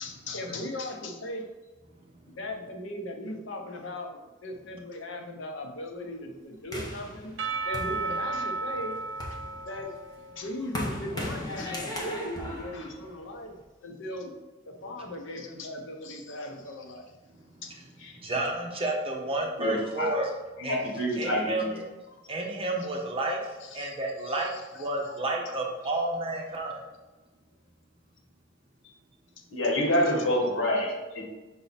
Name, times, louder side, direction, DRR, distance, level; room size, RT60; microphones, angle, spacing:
voice 1, 0.0-1.5 2.2-7.3 7.7-9.0 9.3-9.9 10.4-13.5 13.8-14.3 14.7-17.0 17.6-17.8 22.1-22.2 23.6-24.0 24.2-25.5 28.8-28.9 29.9-30.3, left 1 dB, 70° left, 3 dB, 0.8 m, -38 dB
sound 1, 6.7-8.5 9.0-13.6, left 1 dB, 20° left, 1.1 m, -37 dB
Percussion / Church bell, 7.4-11.3, right 4 dB, 65° right, 0.5 m, -34 dB
voice 2, 18.1-20.3 20.6-20.9 21.2-21.7 22.3-26.8, right 2 dB, 30° right, 0 dB, 1.0 m, -31 dB
voice 3, 19.6-20.1 20.6-21.6 29.5-31.2, left 1 dB, 85° left, 0 dB, 1.5 m, -27 dB
5.6 x 4.0 x 4.2 m, 1.2 s
head